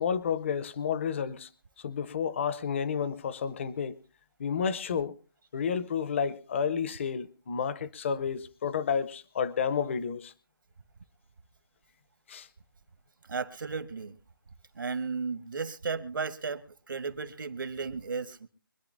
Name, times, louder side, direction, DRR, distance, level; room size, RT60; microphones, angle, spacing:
voice 1, 0.0-1.5 1.8-4.0 4.4-5.2 5.5-10.3 12.3-12.5, left 7 dB, 35° left, 0.8 m, -31 dB
voice 2, 13.3-14.2 14.7-18.5, right 5 dB, 65° right, 1.6 m, -34 dB
24.5 x 10.5 x 2.6 m
figure-of-eight pair, 160°, 12 cm